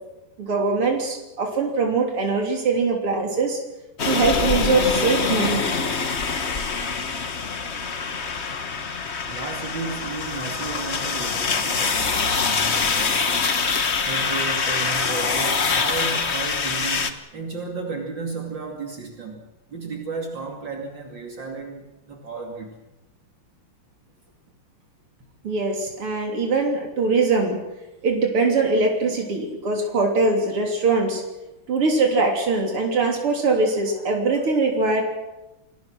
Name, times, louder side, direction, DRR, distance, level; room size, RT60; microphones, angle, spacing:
voice 1, 0.4-3.6 4.1-5.7 25.4-27.6 28.0-31.2 31.7-35.0, right 3 dB, 90° right, 1 dB, 4.2 m, -22 dB
sound 1, 4.0-17.1, left 5 dB, 35° left, 1.4 m, -24 dB
voice 2, 9.3-13.3 14.1-22.8, right 4 dB, 60° right, 2 dB, 3.2 m, -33 dB
27.5 x 21.0 x 6.3 m, 0.98 s
omnidirectional pair, 2.3 m